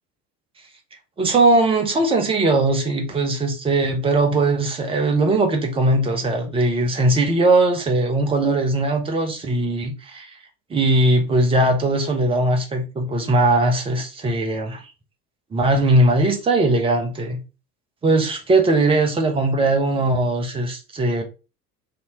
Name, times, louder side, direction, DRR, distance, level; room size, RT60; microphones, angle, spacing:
voice 1, 1.2-10.3 10.7-14.8 15.5-17.4 18.0-21.2, right 2 dB, 10° right, 0.5 m, -19 dB
3.3 x 2.7 x 2.7 m
figure-of-eight pair, 70°, 50 cm